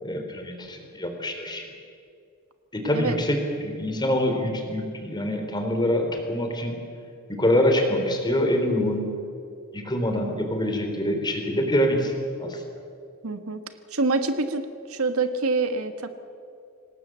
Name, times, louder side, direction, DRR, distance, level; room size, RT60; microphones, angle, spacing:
voice 1, 0.0-1.7 2.7-6.8 7.3-9.2 9.7-12.1 12.4-12.6, left 1 dB, 20° left, 4 dB, 3.5 m, -25 dB
voice 2, 2.8-3.2 13.2-13.6 13.9-14.6 14.9-16.1, right 3 dB, 80° right, 8 dB, 1.5 m, -26 dB
26.5 x 19.0 x 7.5 m, 2.4 s
head